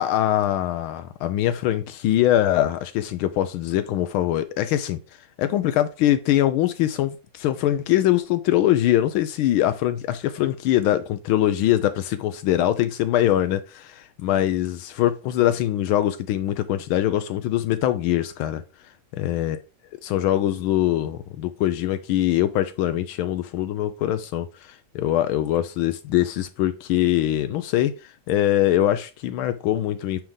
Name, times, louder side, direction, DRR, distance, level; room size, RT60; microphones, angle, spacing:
voice 1, 0.0-5.0 5.4-18.6 19.2-19.6 20.0-30.2, left 13 dB, 80° left, 1.4 m, -23 dB
8.7 x 3.5 x 3.7 m
omnidirectional pair, 2.3 m